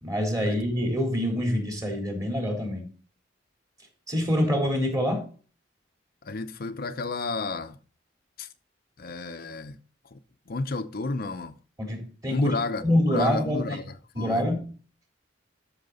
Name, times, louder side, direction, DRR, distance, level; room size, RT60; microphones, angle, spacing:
voice 1, 0.0-2.9 4.1-5.3 11.8-12.5 12.8-13.8 14.1-14.7, left 1 dB, 20° right, 3.6 m, -26 dB
voice 2, 6.2-7.8 8.4-8.5 9.0-9.8 10.1-10.2 10.5-11.6 12.3-13.8 14.2-14.4, left 3 dB, 55° left, 0.7 m, -31 dB
13.5 x 6.0 x 3.9 m
head